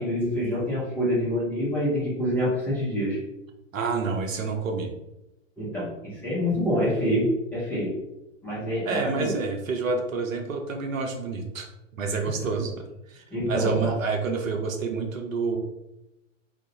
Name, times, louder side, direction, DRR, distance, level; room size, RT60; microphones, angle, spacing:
voice 1, 0.0-3.2 5.6-8.0 8.4-9.4 13.3-13.9, equal, 5° left, -9 dB, 0.4 m, -26 dB
voice 2, 3.7-4.9 8.8-11.7 11.9-15.6, right 4 dB, 85° right, 3 dB, 0.6 m, -28 dB
2.3 x 2.1 x 2.7 m, 0.91 s
hypercardioid pair, 125°, 39 cm